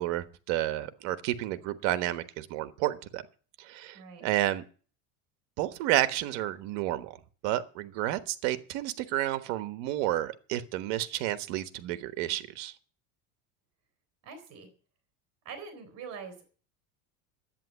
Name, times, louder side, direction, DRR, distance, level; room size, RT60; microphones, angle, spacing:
voice 1, 0.0-3.2 3.6-4.6 5.6-7.2 7.4-12.7, right 14 dB, 70° right, 11 dB, 1.3 m, -31 dB
voice 2, 14.2-14.7 15.4-16.5, right 5 dB, 45° right, 8 dB, 4.0 m, -44 dB
10.5 x 8.9 x 8.3 m, 0.41 s
cardioid pair, 140°, 36 cm